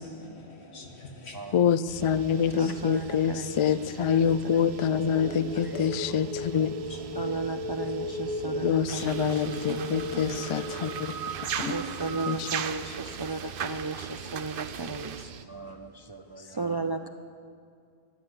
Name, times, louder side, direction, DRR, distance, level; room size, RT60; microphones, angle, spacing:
voice 1, 0.0-1.6 2.3-2.7 5.2-5.8 6.9-7.4 8.4-8.6 8.9-9.2 11.6-11.9 15.6-15.8, left 2 dB, 85° left, 2 dB, 2.0 m, -43 dB
voice 2, 1.5-6.7 8.6-10.9 12.3-12.5, left 7 dB, 55° left, 15 dB, 0.3 m, -26 dB
sound 1, 1.9-15.5, right 8 dB, 90° right, 0.9 m, -45 dB
voice 3, 2.5-4.8 5.1-5.8 6.1-6.2 7.1-11.3 11.7-17.1, right 3 dB, 40° right, 8 dB, 0.3 m, -36 dB
sound 2, 3.4-11.8, left 2 dB, 10° left, 1.0 m, -38 dB
sound 3, 8.9-15.2, right 7 dB, 60° right, 0.8 m, -37 dB
14.5 x 11.0 x 8.0 m, 2.3 s
omnidirectional pair, 1.1 m